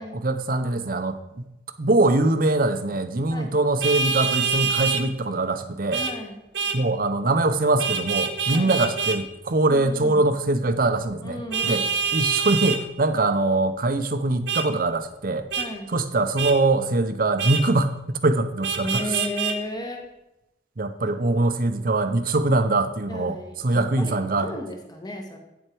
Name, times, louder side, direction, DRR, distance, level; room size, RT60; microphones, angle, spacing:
voice 1, 0.1-1.5 1.8-6.0 6.7-11.8 12.1-15.5 15.9-19.0 20.8-23.4 23.6-24.5, right 2 dB, 55° right, 9 dB, 0.7 m, -23 dB
Vehicle horn car horn honking, 3.8-5.0 5.9-6.1 6.5-6.8 7.8-9.2 11.5-12.8 14.5-14.7 15.5-15.7 16.4-16.6 17.4-17.6 18.6-19.6, right 5 dB, 80° right, 0.9 m, -25 dB
voice 2, 5.9-6.4 8.5-8.8 9.7-10.2 11.2-11.9 15.6-15.9 18.8-20.1 23.1-25.4, left 1 dB, 25° left, 3 dB, 1.4 m, -34 dB
8.8 x 7.8 x 4.6 m, 0.90 s
head